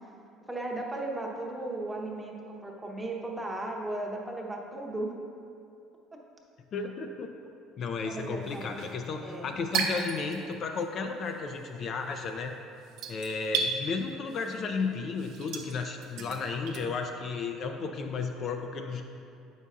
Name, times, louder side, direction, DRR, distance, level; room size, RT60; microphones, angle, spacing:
voice 1, 0.5-5.1 6.1-6.2 8.0-8.8 9.2-9.6, right 2 dB, 10° right, -1 dB, 0.8 m, -36 dB
voice 2, 6.7-7.3 7.8-12.6 13.1-19.0, left 4 dB, 50° left, 4 dB, 0.4 m, -33 dB
sound 1, 8.2-10.8 11.1-16.8, right 5 dB, 75° right, 0.6 m, -35 dB
7.3 x 5.4 x 2.4 m, 2.6 s
cardioid pair, 105°, 0 cm